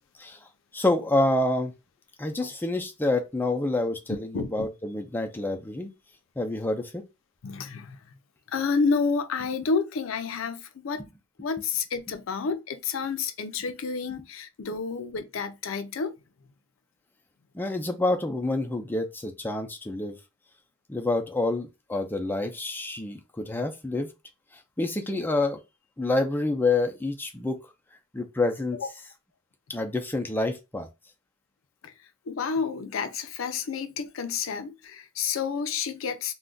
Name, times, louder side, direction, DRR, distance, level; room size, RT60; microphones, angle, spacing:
voice 1, 0.7-1.7 2.2-5.9 6.4-7.0 17.5-20.2 20.9-24.1 24.8-25.6 26.0-27.6 28.1-28.8 29.7-30.9, left 2 dB, 10° left, 0.4 m, -27 dB
voice 2, 4.3-4.7 7.4-8.0 8.5-11.0 11.4-16.1 32.3-36.3, left 5 dB, 90° left, 0.5 m, -29 dB
2.4 x 2.2 x 3.7 m
head